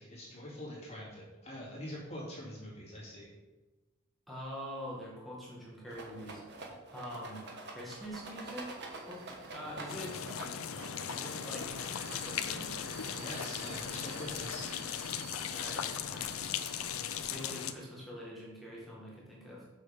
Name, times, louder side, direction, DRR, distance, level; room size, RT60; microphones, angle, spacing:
voice 1, 0.0-3.3 13.2-14.7, left 1 dB, 30° left, -5 dB, 2.5 m, -44 dB
voice 2, 4.3-6.4 6.9-9.2 9.5-10.2 11.0-11.7 12.2-12.8 15.5-16.6 17.2-19.6, equal, ahead, -6 dB, 1.7 m, -45 dB
Rattle, 5.9-12.6, right 2 dB, 55° right, 1.3 m, -47 dB
Vehicle, 7.9-17.3, right 3 dB, 70° right, 1.4 m, -51 dB
sound 1, 9.9-17.7, left 8 dB, 85° left, 0.5 m, -38 dB
6.7 x 6.5 x 5.2 m, 1.1 s
head